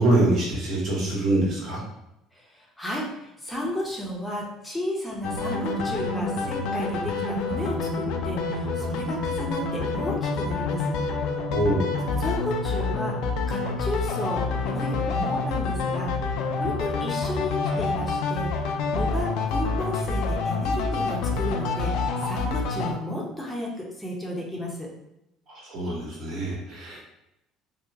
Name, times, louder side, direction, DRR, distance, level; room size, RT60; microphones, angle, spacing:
voice 1, 0.0-1.8 11.5-11.9 17.7-17.8 25.5-27.0, right 1 dB, 50° right, -4 dB, 1.4 m, -24 dB
voice 2, 2.3-11.0 12.2-13.2 13.5-16.1 16.6-18.5 18.9-22.0 22.2-24.9, left 1 dB, 10° left, -3 dB, 0.8 m, -33 dB
sound 1, 5.2-22.9, left 3 dB, 70° left, 0.4 m, -27 dB
2.9 x 2.2 x 3.6 m, 0.85 s
supercardioid pair, 90°, 0 cm